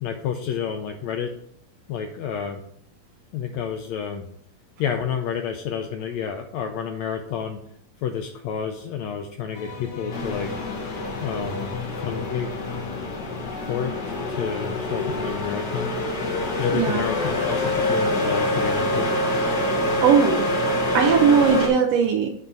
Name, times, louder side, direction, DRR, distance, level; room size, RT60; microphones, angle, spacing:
voice 1, 0.0-1.3 1.9-2.6 3.3-4.2 4.8-7.6 8.0-10.5 11.2-11.7 12.0-12.5 13.7-13.9 14.3-15.9 16.6-19.1, left 7 dB, 80° left, 5 dB, 1.6 m, -29 dB
sound 1, 9.5-15.3, left 3 dB, 60° left, 1.6 m, -35 dB
sound 2, 10.1-21.7, left 1 dB, 45° left, 1.6 m, -26 dB
voice 2, 16.7-17.1 20.0-20.5 20.9-22.3, right 6 dB, 80° right, 4 dB, 1.4 m, -19 dB
8.4 x 4.5 x 5.3 m, 0.69 s
omnidirectional pair, 3.6 m